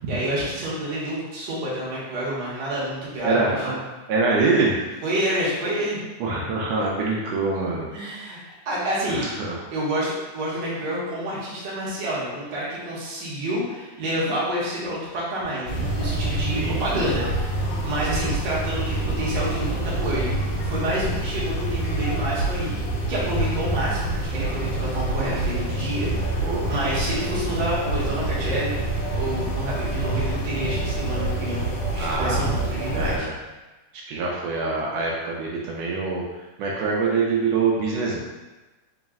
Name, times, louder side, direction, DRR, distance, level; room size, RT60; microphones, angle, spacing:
voice 1, 0.1-3.5 5.0-6.0 7.9-9.3 9.7-22.8 23.1-28.8 29.1-33.3, right 1 dB, 65° right, -7 dB, 1.1 m, -28 dB
voice 2, 3.2-3.8 4.1-4.8 6.2-7.9 9.1-9.6 16.6-16.8 18.1-18.3 26.4-26.7 32.0-32.5 32.9-33.3 33.9-38.2, right 3 dB, 80° right, -3 dB, 1.5 m, -25 dB
sound 1, 15.7-33.2, right 2 dB, 70° left, 1.7 m, -26 dB
4.7 x 2.1 x 3.5 m, 1.1 s
omnidirectional pair, 3.5 m